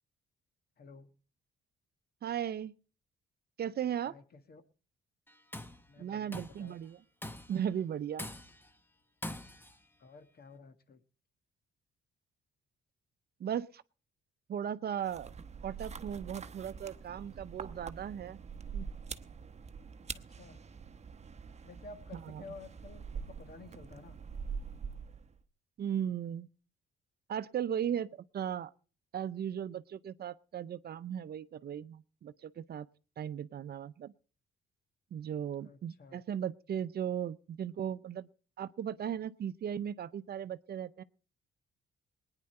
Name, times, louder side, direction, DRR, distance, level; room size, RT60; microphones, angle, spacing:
voice 1, 0.8-1.1 4.1-4.6 5.9-6.8 10.0-11.0 20.1-20.6 21.6-24.2 35.6-36.2, left 4 dB, 50° left, 1.6 m, -52 dB
voice 2, 2.2-2.7 3.6-4.1 6.0-7.0 7.5-8.3 13.4-13.8 14.5-15.3 15.6-18.4 18.7-18.9 22.1-22.4 25.8-26.5 27.3-28.1 28.3-28.7 29.1-32.9 33.2-34.1 35.1-38.3 38.6-41.0, right 9 dB, 55° right, 0.6 m, -37 dB
Tools, 5.3-5.8 6.3-6.7 7.2-7.7 8.2-8.7 9.2-9.8, left 1 dB, 10° left, 1.0 m, -43 dB
sound 1, 15.0-25.4, right 6 dB, 35° right, 0.9 m, -45 dB
21.0 x 9.9 x 4.3 m
cardioid pair, 90°, 20 cm